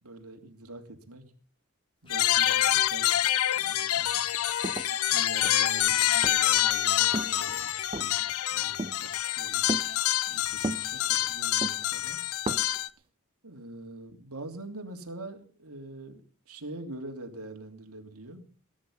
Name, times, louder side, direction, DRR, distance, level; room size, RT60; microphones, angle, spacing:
voice 1, 0.0-1.2 2.0-3.3 3.5-4.3 5.1-9.7 10.3-12.2 13.4-18.4, right 2 dB, 85° right, 4 dB, 3.3 m, -44 dB
Writing, 2.0-3.4 4.0-5.6 5.9-7.0 7.5-9.2 9.5-11.4, left 1 dB, 25° left, 5.6 m, -52 dB
sound 1, 2.1-12.9, left 12 dB, 80° left, 0.6 m, -27 dB
sound 2, 4.2-4.3 4.6-5.7 6.2-6.6 7.1-7.5 7.9-8.2 8.8-9.1 9.7-9.9 10.6-11.2 11.6-11.9 12.3-12.8, right 2 dB, 25° right, 0.7 m, -34 dB
20.0 x 10.5 x 5.7 m, 0.42 s
head